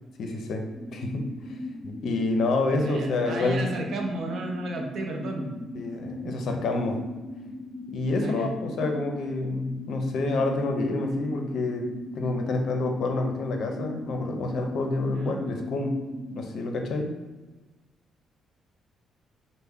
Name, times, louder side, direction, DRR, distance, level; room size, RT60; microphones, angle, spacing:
voice 1, 0.2-1.6 1.8-3.6 5.7-7.0 7.9-11.9 12.2-16.0 16.3-17.1, left 2 dB, 70° left, 3 dB, 0.4 m, -28 dB
sound 1, 0.7-16.4, left 1 dB, 20° left, 0.7 m, -38 dB
voice 2, 2.8-5.5 6.2-6.5 8.2-8.5 15.1-15.4, right 2 dB, 70° right, 1 dB, 0.6 m, -33 dB
3.2 x 2.0 x 3.5 m, 1.2 s
cardioid pair, 90°, 0 cm